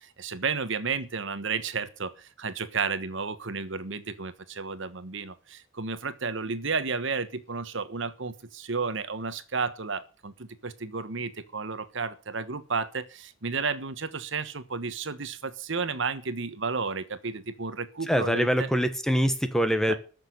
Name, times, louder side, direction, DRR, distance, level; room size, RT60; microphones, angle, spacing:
voice 1, 0.0-18.7 19.9-20.0, right 4 dB, 65° right, 1.3 m, -32 dB
voice 2, 18.1-20.0, equal, 5° left, 1.4 m, -24 dB
14.0 x 6.8 x 9.7 m
head